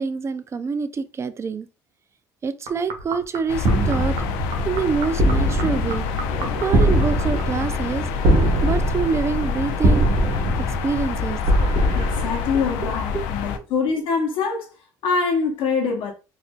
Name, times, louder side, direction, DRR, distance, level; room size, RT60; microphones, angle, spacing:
voice 1, 0.0-1.7 2.4-4.2 4.6-6.0 6.6-8.1 8.6-10.1 10.8-11.4 12.5-12.9 13.1-13.7, right 5 dB, 30° right, 0.4 m, -26 dB
sound 1, 2.7-8.1 8.4-9.4 9.7-11.6 12.2-12.3, right 4 dB, 75° right, 0.9 m, -37 dB
sound 2, 3.5-13.6, left 7 dB, 90° left, 0.4 m, -28 dB
sound 3, 3.6-13.1, right 1 dB, 60° right, 1.1 m, -22 dB
voice 2, 11.9-14.7 15.0-16.1, left 5 dB, 70° left, 0.8 m, -24 dB
4.1 x 2.5 x 2.3 m
supercardioid pair, 80°, 9 cm